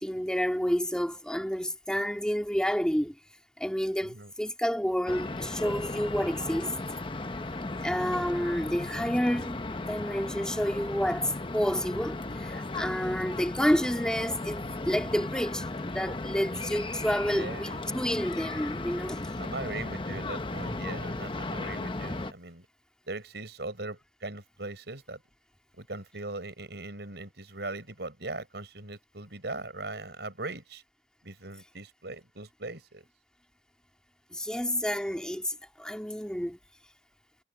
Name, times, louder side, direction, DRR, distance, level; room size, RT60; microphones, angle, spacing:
voice 1, 0.0-3.2 3.6-6.7 7.8-19.3 34.3-36.6, equal, 5° left, 2.5 m, -29 dB
sound 1, 5.1-22.3, left 2 dB, 30° left, 0.9 m, -36 dB
voice 2, 17.3-17.7 19.4-22.7 23.1-25.2 25.8-30.8 31.2-33.0, right 2 dB, 70° right, 5.4 m, -40 dB
head